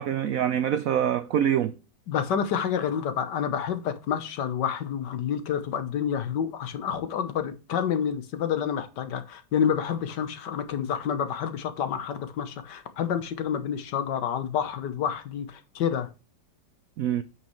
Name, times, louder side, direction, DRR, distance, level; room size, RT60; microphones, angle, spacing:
voice 1, 0.0-1.7 17.0-17.2, right 9 dB, 80° right, 0.7 m, -25 dB
voice 2, 2.1-16.1, left 8 dB, 70° left, 1.5 m, -28 dB
9.4 x 5.8 x 3.1 m
omnidirectional pair, 2.0 m